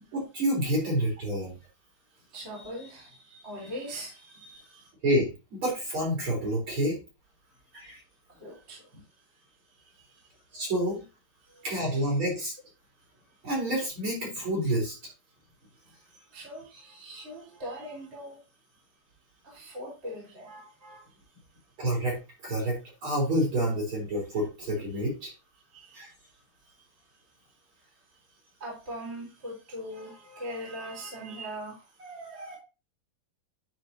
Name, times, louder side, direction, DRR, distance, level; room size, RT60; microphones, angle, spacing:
voice 1, 0.1-1.5 5.0-7.0 7.7-8.0 10.5-11.0 11.6-12.5 13.4-14.9 21.8-22.2 22.4-25.3 25.9-26.1, right 1 dB, 30° right, -2 dB, 4.4 m, -28 dB
voice 2, 2.3-4.9 8.3-9.0 9.7-10.3 11.4-11.6 15.8-18.4 19.4-21.0 25.7-26.0 26.6-26.8 27.8-27.9 28.3-32.6, equal, 15° right, -4 dB, 3.4 m, -42 dB
11.0 x 6.5 x 2.8 m, 0.29 s
omnidirectional pair, 5.0 m